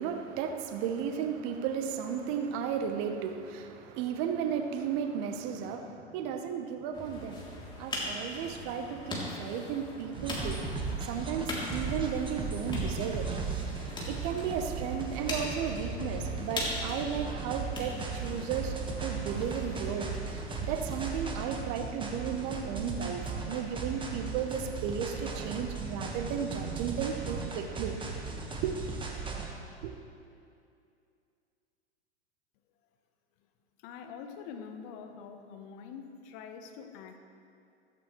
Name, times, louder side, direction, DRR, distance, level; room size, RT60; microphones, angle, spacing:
voice 1, 0.0-10.6 11.0-13.7 14.1-28.0 28.6-28.8 29.8-29.9, right 7 dB, 40° right, 6 dB, 1.1 m, -34 dB
sound 1, 6.9-21.0, left 1 dB, 15° left, 3.3 m, -40 dB
sound 2, 10.1-29.5, right 4 dB, 15° right, 1.6 m, -37 dB
voice 2, 33.8-37.2, left 6 dB, 45° left, 6 dB, 1.2 m, -45 dB
15.5 x 14.0 x 3.3 m, 2.5 s
figure-of-eight pair, 95°, 34 cm